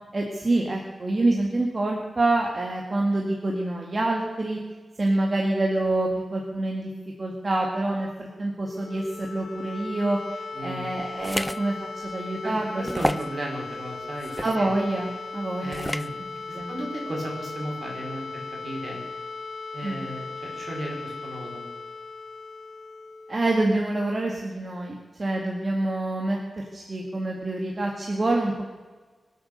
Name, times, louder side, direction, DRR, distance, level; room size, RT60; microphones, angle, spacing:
voice 1, 0.1-4.6 5.0-6.9 7.2-13.1 14.4-15.8 16.5-16.8 19.8-20.0 23.3-28.6, right 2 dB, 35° right, 0 dB, 2.0 m, -26 dB
sound 1, 8.6-24.4, left 4 dB, 90° left, 3.2 m, -38 dB
voice 2, 10.5-10.9 12.4-14.7 15.6-16.2 16.5-19.0 19.7-21.6, right 1 dB, 60° right, 0 dB, 5.0 m, -35 dB
sound 2, 11.2-11.6 12.1-12.2 12.9-13.3 14.2-14.6 15.7-16.1, equal, 5° left, 0.4 m, -29 dB
24.5 x 8.4 x 6.8 m, 1.4 s
wide cardioid pair, 110°, 0 cm